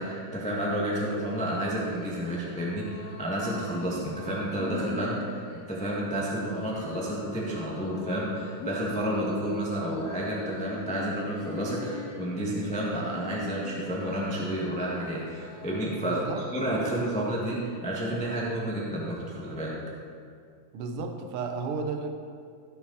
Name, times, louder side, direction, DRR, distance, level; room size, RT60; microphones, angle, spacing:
voice 1, 0.0-19.7, right 1 dB, 5° left, -5 dB, 0.9 m, -30 dB
sound 1, 1.5-16.5, left 3 dB, 70° left, 2.0 m, -42 dB
voice 2, 16.0-16.4 20.7-22.1, right 4 dB, 70° right, 5 dB, 1.4 m, -33 dB
16.5 x 6.9 x 4.2 m, 2.3 s
omnidirectional pair, 3.6 m